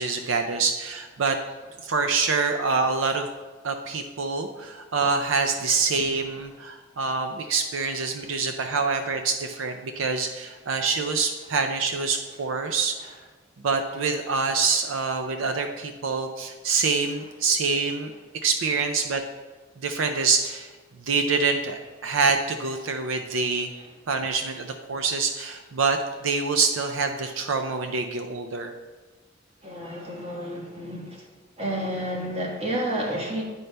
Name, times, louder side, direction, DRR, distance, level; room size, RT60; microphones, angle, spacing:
voice 1, 0.0-1.4 1.8-3.3 3.6-13.1 13.6-18.1 18.4-19.2 19.8-20.7 21.0-23.7 24.1-28.7, right 4 dB, 85° right, 6 dB, 0.5 m, -26 dB
voice 2, 29.6-31.2 31.6-33.4, equal, 30° right, -2 dB, 1.4 m, -30 dB
9.1 x 5.4 x 3.4 m, 1.3 s
head